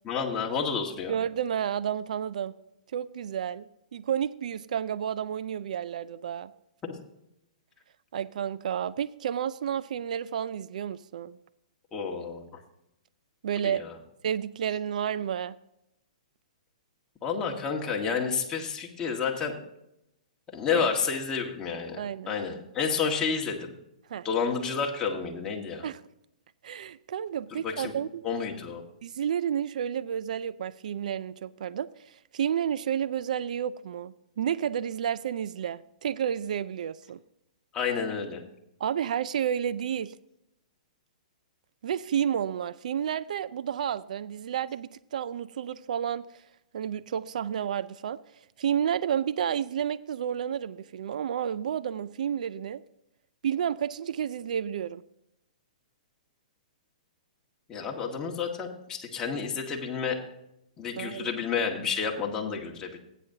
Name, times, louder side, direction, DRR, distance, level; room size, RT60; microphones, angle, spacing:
voice 1, 0.1-1.1 6.8-6.9 11.9-12.5 13.6-13.9 17.2-19.6 20.5-22.0 22.3-23.7 24.2-25.8 27.5-27.9 28.2-28.8 37.7-38.4 57.7-60.2 60.8-63.0, left 6 dB, 15° left, 0 dB, 1.7 m, -30 dB
voice 2, 1.1-2.5 2.9-6.5 8.1-11.4 13.4-13.8 14.2-15.5 20.7-20.8 22.0-22.3 24.1-24.3 25.8-26.0 26.6-28.2 29.0-37.2 38.8-40.1 41.8-46.3 46.7-48.2 48.6-52.8 53.4-55.0 61.0-61.3, right 9 dB, 70° right, 16 dB, 0.4 m, -31 dB
15.5 x 9.2 x 2.8 m, 0.84 s
hypercardioid pair, 140°, 4 cm